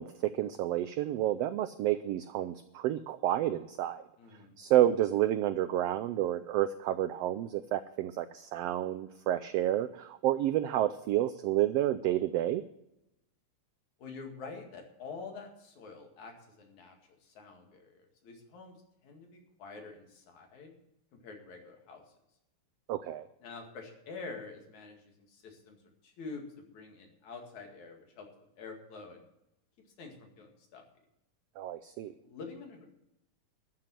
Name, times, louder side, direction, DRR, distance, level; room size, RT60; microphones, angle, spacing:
voice 1, 0.0-4.0 4.6-12.6 22.9-23.3 31.6-32.1, right 13 dB, 90° right, 12 dB, 1.4 m, -30 dB
voice 2, 4.2-4.6 14.0-17.0 17.2-18.8 19.0-20.7 21.2-22.0 23.4-25.8 26.0-28.3 28.6-29.2 30.0-30.8 32.2-32.9, left 4 dB, 70° left, 3 dB, 3.6 m, -47 dB
13.5 x 7.8 x 7.6 m, 0.83 s
omnidirectional pair, 3.4 m